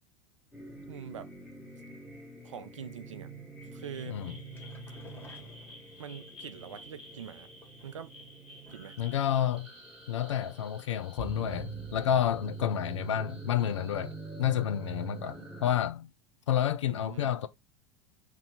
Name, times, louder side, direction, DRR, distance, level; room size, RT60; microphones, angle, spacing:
sound 1, 0.5-15.7, right 3 dB, 5° right, 1.5 m, -45 dB
voice 1, 0.9-1.3 2.4-3.3 3.7-4.2 6.0-7.5 7.8-8.1 8.7-9.0 16.9-17.3, right 8 dB, 75° right, 0.4 m, -44 dB
voice 2, 4.1-4.4 9.0-9.7 10.1-16.1 16.5-17.5, left 10 dB, 70° left, 0.4 m, -30 dB
sound 2, 4.2-6.3 7.3-8.2 8.6-9.1 9.3-9.4 9.8-9.9, left 2 dB, 10° left, 1.5 m, -55 dB
2.9 x 2.6 x 4.0 m
figure-of-eight pair, 80°, 16 cm